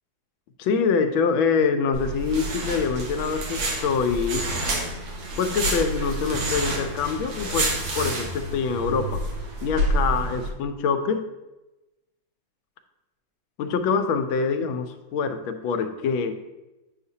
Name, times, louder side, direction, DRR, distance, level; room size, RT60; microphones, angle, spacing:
voice 1, 0.6-4.5 5.4-9.2 9.6-11.2 13.6-16.3, left 5 dB, 85° left, 7 dB, 1.4 m, -25 dB
sound 1, 1.9-10.5, right 1 dB, 75° right, 1.9 m, -28 dB
8.3 x 5.7 x 2.8 m, 1.0 s
omnidirectional pair, 2.1 m